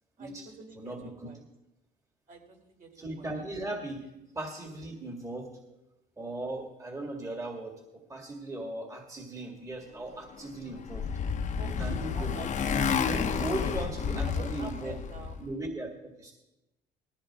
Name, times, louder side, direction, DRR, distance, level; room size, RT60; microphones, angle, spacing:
voice 1, 0.2-1.4 2.3-2.9 3.2-3.3 5.7-5.8 11.6-12.5 14.2-15.4, right 4 dB, 55° right, 1 dB, 4.4 m, -46 dB
voice 2, 0.7-1.3 2.9-4.1 4.3-5.5 6.2-11.1 11.7-12.3 13.0-15.0 15.4-16.3, right 1 dB, 20° right, 1 dB, 2.1 m, -38 dB
Motorcycle, 10.4-15.4, left 6 dB, 45° left, 1.0 m, -30 dB
19.0 x 14.5 x 3.7 m, 0.96 s
cardioid pair, 110°, 17 cm